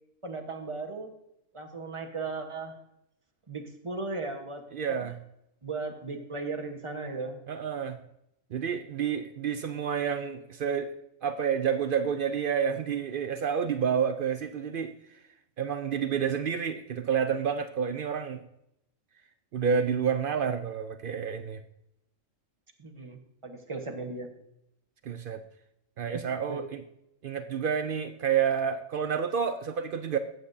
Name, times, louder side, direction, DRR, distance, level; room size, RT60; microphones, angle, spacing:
voice 1, 0.2-1.1 1.5-2.8 3.5-5.1 5.6-7.4 17.4-17.5 22.8-24.3 26.1-26.2 26.5-26.6, right 3 dB, 25° right, 3 dB, 1.1 m, -37 dB
voice 2, 4.7-5.2 7.5-8.0 8.5-10.9 11.2-14.9 15.6-18.4 19.5-21.6 25.0-25.4 26.0-26.8 27.2-30.2, right 7 dB, 65° right, 10 dB, 0.5 m, -29 dB
14.5 x 7.9 x 2.7 m, 0.81 s
omnidirectional pair, 1.4 m